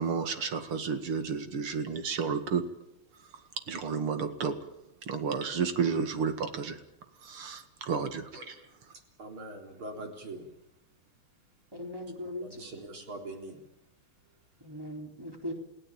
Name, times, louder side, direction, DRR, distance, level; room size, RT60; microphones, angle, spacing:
voice 1, 0.0-2.6 3.7-4.5 5.1-6.8 7.2-8.3, right 6 dB, 85° right, 9 dB, 2.9 m, -31 dB
voice 2, 9.2-10.5 12.4-13.7, right 2 dB, 70° right, 3 dB, 4.6 m, -42 dB
voice 3, 11.7-12.6 14.6-15.5, left 1 dB, 10° right, 2 dB, 4.0 m, -39 dB
29.5 x 16.5 x 8.8 m, 0.88 s
omnidirectional pair, 2.4 m